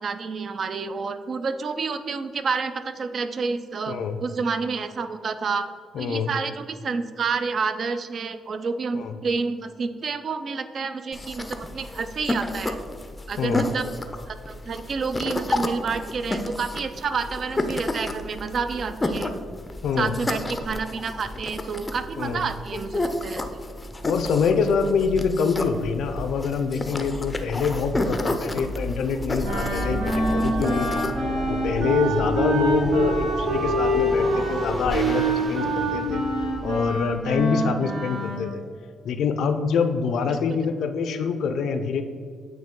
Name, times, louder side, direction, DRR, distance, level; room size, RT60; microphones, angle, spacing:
voice 1, 0.0-5.7 6.0-12.8 13.3-13.9 14.2-19.4 20.0-23.6 40.5-40.6, right 5 dB, 50° right, 10 dB, 0.4 m, -29 dB
voice 2, 3.9-4.2 5.9-6.3 8.9-9.1 13.4-13.6 19.8-20.1 22.2-22.4 24.0-31.0 31.5-36.2 36.6-38.6 39.0-42.0, left 5 dB, 75° left, 8 dB, 0.5 m, -25 dB
sound 1, 11.1-31.1, left 1 dB, 20° left, 0.5 m, -31 dB
sound 2, 29.3-37.4, right 1 dB, 30° right, 0.9 m, -31 dB
Wind instrument woodwind instrument, 29.4-38.4, right 1 dB, 85° right, 1.3 m, -26 dB
8.9 x 3.0 x 3.6 m, 2.1 s
cardioid pair, 105°, 0 cm